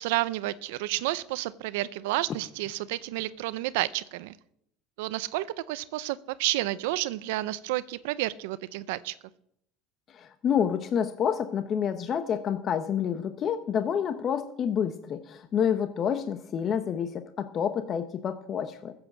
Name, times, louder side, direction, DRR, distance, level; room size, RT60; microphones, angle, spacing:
voice 1, 0.0-4.3 5.0-9.2, right 17 dB, 85° right, 16 dB, 0.5 m, -30 dB
voice 2, 10.1-18.9, left 8 dB, 40° left, 9 dB, 1.0 m, -28 dB
14.5 x 8.0 x 7.2 m, 0.75 s
supercardioid pair, 110°, 0 cm